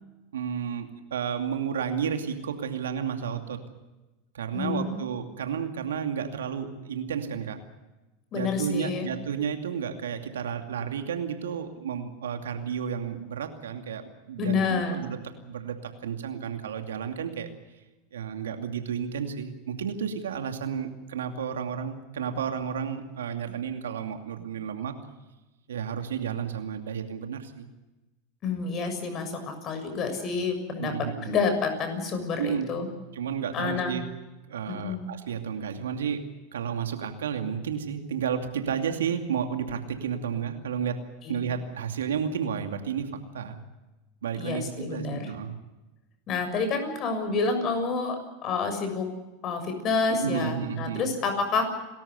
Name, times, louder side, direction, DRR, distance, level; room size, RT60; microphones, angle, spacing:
voice 1, 0.3-3.6 4.3-7.6 8.3-15.2 15.5-17.5 18.1-24.9 25.7-27.7 30.8-31.3 32.4-32.8 33.1-34.0 34.5-36.3 36.5-41.0 41.3-43.1 43.3-43.6 44.2-44.6 44.9-45.6 50.1-51.1, right 7 dB, 85° right, 6 dB, 2.5 m, -32 dB
voice 2, 4.5-5.0 8.3-9.1 14.4-15.0 28.4-30.9 31.2-32.9 33.5-33.9 34.7-35.0 41.2-41.5 44.4-45.3 46.3-49.1 49.4-51.6, left 4 dB, 40° left, 6 dB, 6.9 m, -28 dB
29.5 x 13.5 x 8.3 m, 1.1 s
hypercardioid pair, 95°, 0 cm